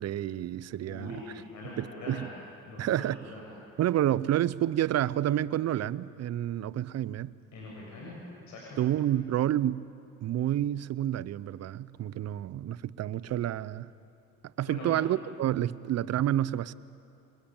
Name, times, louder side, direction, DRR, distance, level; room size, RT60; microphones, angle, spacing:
voice 1, 0.0-1.2 1.8-2.3 2.8-3.3 3.8-7.3 8.8-9.9 10.2-13.9 14.6-16.7, right 12 dB, 55° right, 0.8 m, -29 dB
voice 2, 0.8-2.3 2.7-3.4 7.5-8.2 8.5-8.8 14.6-14.9, left 2 dB, 70° left, 7.6 m, -42 dB
27.5 x 22.0 x 8.9 m
cardioid pair, 95°, 31 cm